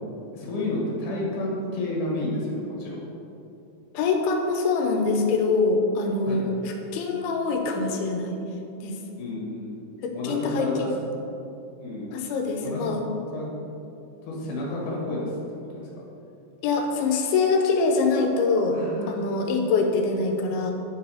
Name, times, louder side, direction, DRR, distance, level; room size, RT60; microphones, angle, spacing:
voice 1, 0.3-3.0 6.2-6.4 9.2-9.8 10.1-11.0 11.8-12.1 12.6-12.8 13.3-13.5 14.2-15.4 15.7-16.0 18.7-19.1, left 2 dB, 60° left, -4 dB, 3.0 m, -30 dB
voice 2, 3.9-8.3 8.8-9.0 10.0-10.9 12.1-13.0 16.6-18.8 19.1-20.7, left 4 dB, 80° left, 3 dB, 2.7 m, -24 dB
9.9 x 4.7 x 4.9 m, 2.8 s
omnidirectional pair, 4.4 m